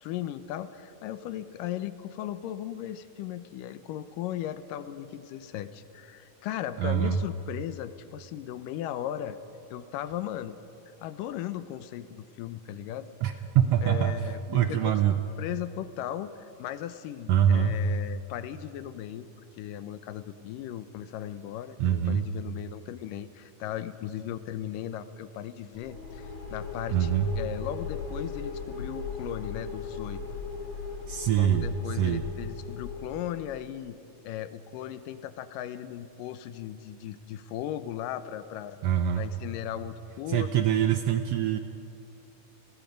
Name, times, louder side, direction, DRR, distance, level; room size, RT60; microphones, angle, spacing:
voice 1, 0.0-9.4 9.7-10.6 11.0-13.4 13.6-19.3 19.6-30.2 31.3-34.0 34.2-38.8 39.2-40.5, left 11 dB, 90° left, 12 dB, 2.5 m, -37 dB
voice 2, 6.8-7.2 13.2-14.1 14.5-15.2 17.3-17.8 21.8-22.2 26.9-27.3 31.1-32.2 38.8-39.3 40.3-41.6, right 9 dB, 80° right, 7 dB, 1.4 m, -24 dB
sound 1, 25.7-33.5, left 5 dB, 55° left, 3.8 m, -37 dB
29.5 x 20.5 x 5.2 m, 2.7 s
omnidirectional pair, 3.8 m